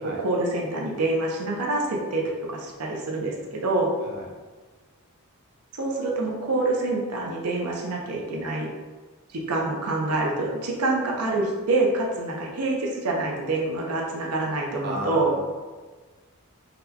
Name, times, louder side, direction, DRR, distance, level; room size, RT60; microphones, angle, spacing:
voice 1, 0.2-3.9 5.7-8.7 9.3-15.3, right 2 dB, 90° right, -1 dB, 0.6 m, -26 dB
voice 2, 4.0-4.3 14.8-15.4, right 1 dB, 50° right, -2 dB, 0.5 m, -34 dB
4.0 x 2.2 x 2.8 m, 1.3 s
head